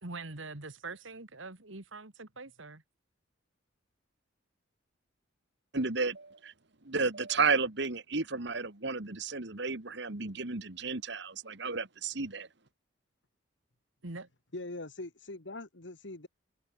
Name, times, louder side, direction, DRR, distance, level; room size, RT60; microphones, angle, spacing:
voice 1, 0.0-2.8 14.0-14.3, right 3 dB, 80° right, 2.5 m, -43 dB
voice 2, 5.7-6.5 6.9-12.5, right 4 dB, 60° right, 1.9 m, -32 dB
voice 3, 14.5-16.3, left 2 dB, 65° left, 1.8 m, -42 dB
head